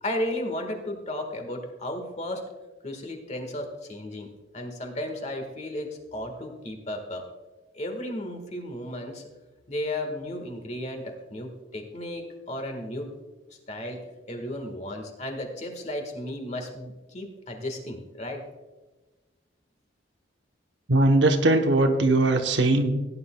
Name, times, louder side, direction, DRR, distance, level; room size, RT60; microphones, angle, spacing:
voice 1, 0.0-2.4 2.8-4.3 4.5-7.3 7.7-9.2 9.7-13.1 13.7-14.0 14.3-18.4, left 1 dB, 40° left, 4 dB, 1.5 m, -34 dB
voice 2, 20.9-23.1, right 2 dB, 70° right, 5 dB, 1.0 m, -20 dB
16.5 x 9.6 x 2.3 m, 1.2 s
head